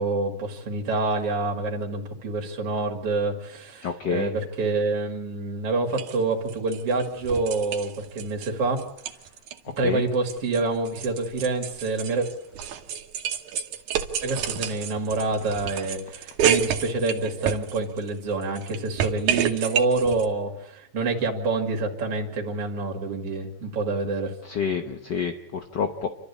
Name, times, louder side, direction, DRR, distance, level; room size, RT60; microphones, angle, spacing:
voice 1, 0.0-8.8 9.8-12.3 14.2-24.3, right 3 dB, 55° right, 2 dB, 3.3 m, -27 dB
voice 2, 3.8-4.3 9.8-10.0 24.4-26.1, left 6 dB, 60° left, 6 dB, 1.1 m, -28 dB
sound 1, 5.9-6.2 6.5-8.5 8.8-9.6 9.9-18.1 18.4-20.3, right 9 dB, 85° right, 2.7 m, -29 dB
28.5 x 12.5 x 8.4 m, 0.82 s
omnidirectional pair, 3.3 m